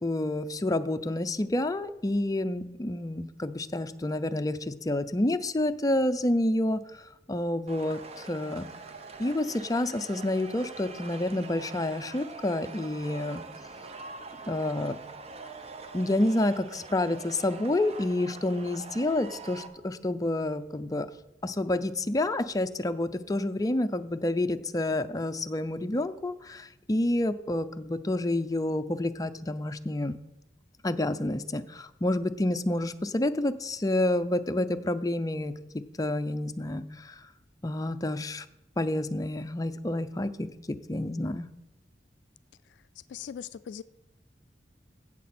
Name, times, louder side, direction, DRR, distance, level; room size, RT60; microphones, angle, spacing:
voice 1, 0.0-8.7 9.2-13.4 14.5-15.0 15.9-21.1 21.4-30.2 30.8-37.2 37.6-38.5 38.8-41.5, left 1 dB, 20° left, 0.5 m, -29 dB
sound 1, 7.7-19.7, right 3 dB, 35° right, 0.8 m, -44 dB
voice 2, 43.1-43.8, left 8 dB, 80° left, 0.3 m, -39 dB
16.0 x 6.7 x 4.3 m
head